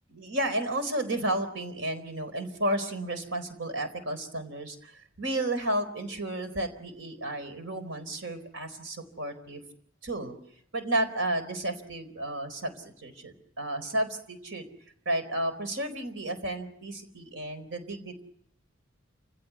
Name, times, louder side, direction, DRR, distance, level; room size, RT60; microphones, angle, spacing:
voice 1, 0.1-9.6 10.0-10.3 10.7-14.6 15.1-18.2, right 1 dB, 70° right, 9 dB, 4.2 m, -32 dB
29.5 x 16.5 x 9.6 m, 0.72 s
head